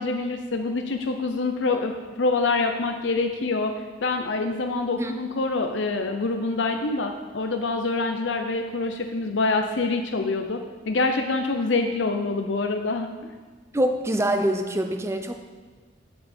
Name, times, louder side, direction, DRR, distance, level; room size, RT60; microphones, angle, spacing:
voice 1, 0.0-3.7 4.0-13.1, left 3 dB, 70° left, 5 dB, 0.6 m, -26 dB
voice 2, 13.7-15.3, right 1 dB, 15° right, 5 dB, 0.6 m, -24 dB
14.5 x 5.5 x 4.4 m, 1.4 s
head